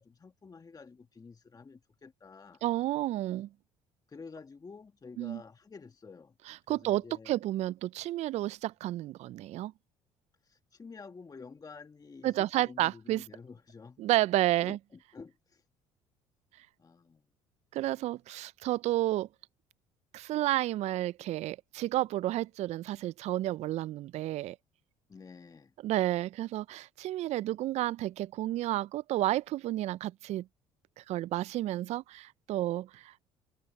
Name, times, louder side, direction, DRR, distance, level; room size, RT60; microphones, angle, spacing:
voice 1, 0.0-2.6 4.1-6.3 6.7-7.4 10.4-14.1 14.6-15.6 16.8-17.2 25.1-25.7, left 4 dB, 25° left, 1.5 m, -50 dB
voice 2, 2.6-3.5 5.2-5.4 6.5-9.7 12.2-13.3 14.0-14.8 17.7-19.3 20.1-24.6 25.8-30.4 31.0-33.1, right 15 dB, 55° right, 0.4 m, -31 dB
hypercardioid pair, 65°, 14 cm